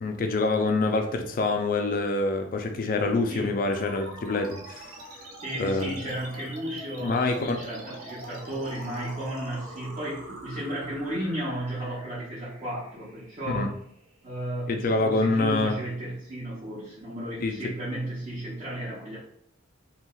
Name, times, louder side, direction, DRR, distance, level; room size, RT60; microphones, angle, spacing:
voice 1, 0.0-4.9 5.6-5.9 7.0-7.6 13.4-13.7 14.7-15.8 17.4-17.7, left 3 dB, 40° left, 5 dB, 0.3 m, -26 dB
sound 1, 3.7-14.7, right 2 dB, 90° right, 0.6 m, -44 dB
voice 2, 5.4-13.7 14.2-19.2, right 1 dB, 35° right, -9 dB, 0.8 m, -34 dB
3.0 x 2.8 x 2.3 m, 0.71 s
head